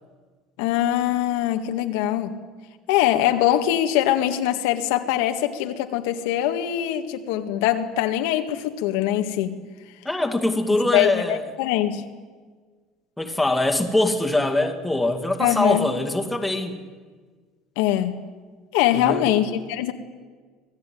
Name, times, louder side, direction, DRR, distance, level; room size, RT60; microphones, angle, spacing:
voice 1, 0.6-2.4 2.9-9.6 10.9-12.0 15.4-15.9 17.8-18.2 18.7-19.9, left 12 dB, 85° left, 6 dB, 1.8 m, -22 dB
voice 2, 10.0-11.5 13.2-16.8 18.9-19.3, left 2 dB, 5° left, 3 dB, 2.3 m, -23 dB
26.0 x 18.0 x 9.4 m, 1.5 s
cardioid pair, 145°, 0 cm